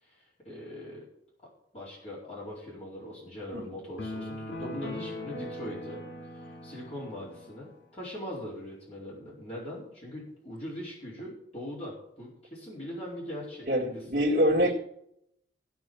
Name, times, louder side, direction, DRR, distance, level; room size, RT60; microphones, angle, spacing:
voice 1, 0.0-1.1 1.7-6.0 6.3-14.0 14.5-14.7, left 1 dB, 35° left, -6 dB, 4.7 m, -41 dB
sound 1, 4.0-7.5, left 1 dB, 80° left, 2.3 m, -40 dB
voice 2, 13.7-14.7, equal, 50° right, -2 dB, 2.2 m, -25 dB
16.0 x 6.0 x 7.1 m, 0.72 s
head